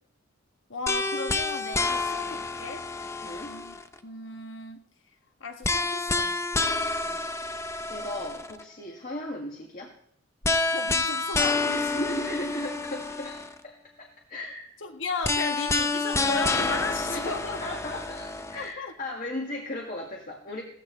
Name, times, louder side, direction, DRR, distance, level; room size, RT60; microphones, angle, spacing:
voice 1, 0.7-2.9 3.4-4.9 5.4-6.4 10.4-12.1 14.8-17.6 18.5-18.9, left 3 dB, 70° left, 6 dB, 1.3 m, -35 dB
sound 1, 0.9-4.0 5.6-8.6 10.4-13.6 15.2-18.7, left 3 dB, 15° left, 0.6 m, -28 dB
voice 2, 3.2-3.5 7.0-7.2 7.9-9.9 11.7-14.7 17.1-20.6, left 1 dB, 45° left, 0 dB, 1.7 m, -36 dB
16.5 x 14.0 x 3.2 m, 0.67 s
head